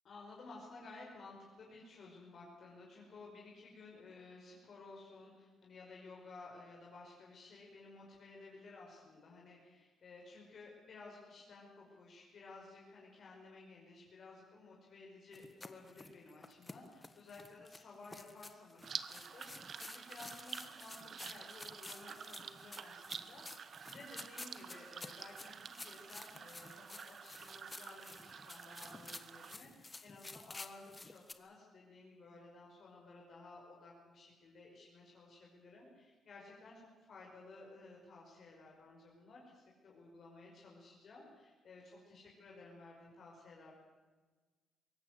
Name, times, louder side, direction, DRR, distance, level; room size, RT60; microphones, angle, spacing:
voice 1, 0.0-43.7, left 3 dB, 50° left, -2 dB, 5.4 m, -55 dB
sound 1, 15.3-31.3, left 2 dB, 20° left, 1.5 m, -52 dB
sound 2, 18.8-29.6, right 7 dB, 50° right, 1.2 m, -49 dB
23.5 x 18.0 x 8.1 m, 1.3 s
cardioid pair, 110°, 0 cm